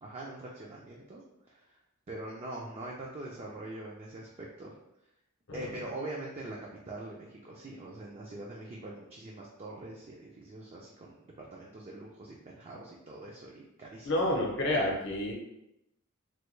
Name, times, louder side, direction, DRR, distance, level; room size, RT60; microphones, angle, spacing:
voice 1, 0.0-1.8 2.1-4.8 5.5-14.1, right 2 dB, 30° right, -3 dB, 0.4 m, -43 dB
voice 2, 14.0-15.3, left 1 dB, 60° left, -1 dB, 0.7 m, -29 dB
3.2 x 2.2 x 3.1 m, 0.86 s
head